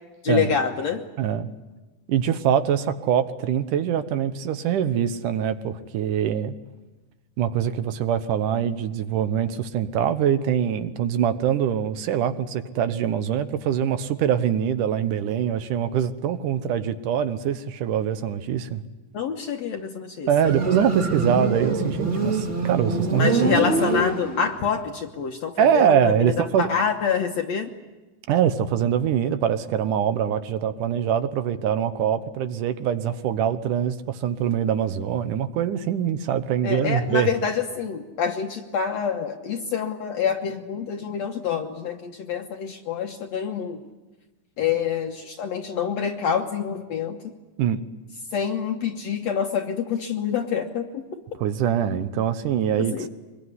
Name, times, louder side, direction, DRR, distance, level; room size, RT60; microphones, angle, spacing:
voice 1, 0.2-1.0 19.1-20.5 23.2-27.7 36.6-43.8 44.6-47.3 48.3-51.1 51.3-51.4 52.8-53.1, left 7 dB, 65° left, 3 dB, 2.0 m, -27 dB
voice 2, 1.2-1.5 2.1-6.6 7.4-18.8 20.3-23.5 25.6-26.7 28.3-37.3 47.6-47.8 51.4-53.1, right 9 dB, 75° right, 11 dB, 2.5 m, -23 dB
Motorcycle, 20.3-24.7, right 3 dB, 25° right, 2.3 m, -25 dB
24.5 x 21.5 x 9.6 m, 1.2 s
omnidirectional pair, 3.8 m